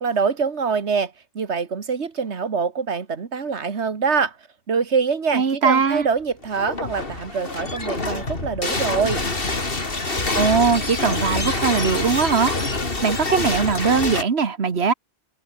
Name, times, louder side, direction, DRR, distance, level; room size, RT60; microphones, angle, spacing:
voice 1, 0.0-4.4 4.7-9.3, right 5 dB, 85° right, 2.0 m, -24 dB
voice 2, 5.3-6.1 10.3-12.7 13.0-14.9, right 5 dB, 70° right, 1.8 m, -20 dB
sound 1, 6.4-14.2, left 3 dB, 55° left, 3.2 m, -26 dB
omnidirectional pair, 1.1 m